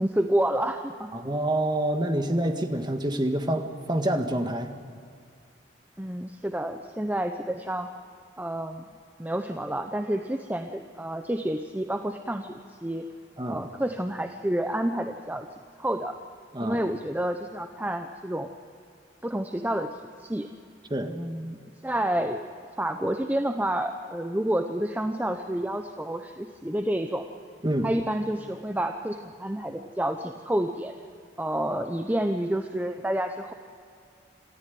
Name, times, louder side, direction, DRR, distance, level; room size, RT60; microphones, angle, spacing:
voice 1, 0.0-1.1 6.0-7.9 8.4-8.9 9.2-12.5 12.8-13.1 13.5-15.5 15.8-16.1 16.6-18.5 19.2-19.9 20.2-20.5 21.0-22.5 22.8-27.3 27.8-30.9 31.4-33.5, right 1 dB, 10° right, 6 dB, 0.8 m, -29 dB
voice 2, 1.1-4.7 13.4-13.7 16.5-16.8 20.9-21.1 27.6-27.9, right 1 dB, 25° right, 6 dB, 1.6 m, -27 dB
27.0 x 14.0 x 9.4 m, 2.3 s
head